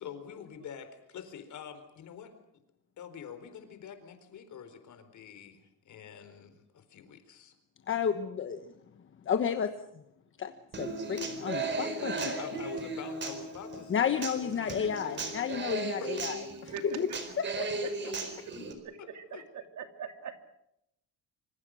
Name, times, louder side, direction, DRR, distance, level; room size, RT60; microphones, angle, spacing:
voice 1, 0.0-2.3 3.0-7.5 12.0-15.5 16.0-16.1 17.7-18.1 19.0-19.4, left 8 dB, 50° left, 9 dB, 4.2 m, -46 dB
voice 2, 7.9-8.6 9.2-9.7 10.4-10.5 10.8-12.3 13.9-17.1 17.6-17.7, left 7 dB, 35° left, 8 dB, 1.2 m, -31 dB
Human voice / Acoustic guitar, 10.7-18.7, right 3 dB, 30° right, 4.4 m, -36 dB
voice 3, 19.1-20.5, right 6 dB, 50° right, 7 dB, 2.7 m, -41 dB
26.5 x 26.0 x 6.4 m, 0.80 s
cardioid pair, 175°, 37 cm